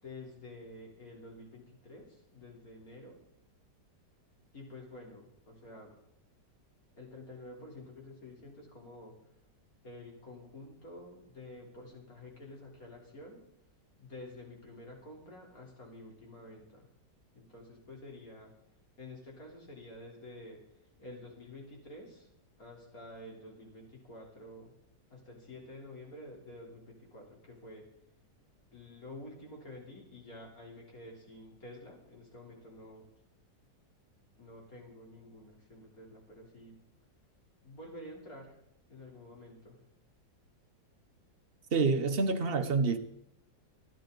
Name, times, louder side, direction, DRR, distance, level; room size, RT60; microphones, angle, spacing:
voice 1, 0.0-3.2 4.5-5.9 7.0-9.1 9.8-13.4 14.0-16.9 17.3-18.5 19.0-20.6 21.0-22.3 22.6-24.7 25.1-27.8 28.7-33.1 34.4-36.7 37.6-38.6 38.9-39.8, left 1 dB, 50° left, 4.2 m, -49 dB
voice 2, 41.7-43.0, right 4 dB, 45° right, 0.8 m, -27 dB
26.5 x 10.0 x 4.0 m
omnidirectional pair, 1.9 m